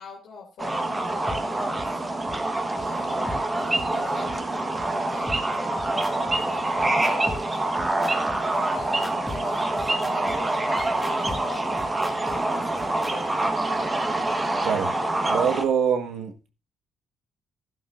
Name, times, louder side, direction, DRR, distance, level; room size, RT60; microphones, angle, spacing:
voice 1, 0.0-2.2 2.8-6.1 6.4-7.8 8.3-13.4, left 5 dB, 80° left, 2.5 m, -43 dB
sound 1, 0.6-15.6, right 2 dB, 20° right, 1.3 m, -26 dB
sound 2, 1.3-1.4 1.8-1.9 2.3-2.4 2.8-2.9 3.3-3.4 3.8-3.9 4.3-4.4 4.8-4.9 5.3-13.1, left 1 dB, 5° left, 2.1 m, -37 dB
voice 2, 14.6-14.9 15.3-16.3, right 7 dB, 75° right, 1.4 m, -24 dB
12.5 x 11.0 x 2.5 m
cardioid pair, 90°, 0 cm